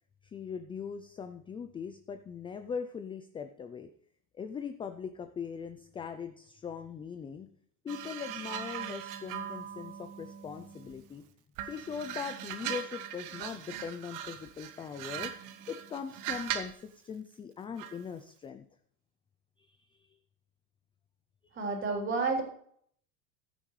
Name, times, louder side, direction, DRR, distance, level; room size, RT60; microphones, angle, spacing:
voice 1, 0.2-3.9 4.3-7.5 7.8-11.3 11.6-15.3 15.7-18.7 19.6-20.1, left 6 dB, 15° left, 9 dB, 0.3 m, -40 dB
sound 1, 7.9-11.1 11.6-16.8 17.8-18.0, right 10 dB, 45° right, 1.3 m, -40 dB
voice 2, 21.5-22.4, right 4 dB, 25° right, 2 dB, 3.6 m, -30 dB
15.5 x 9.0 x 3.2 m, 0.63 s
supercardioid pair, 125°, 44 cm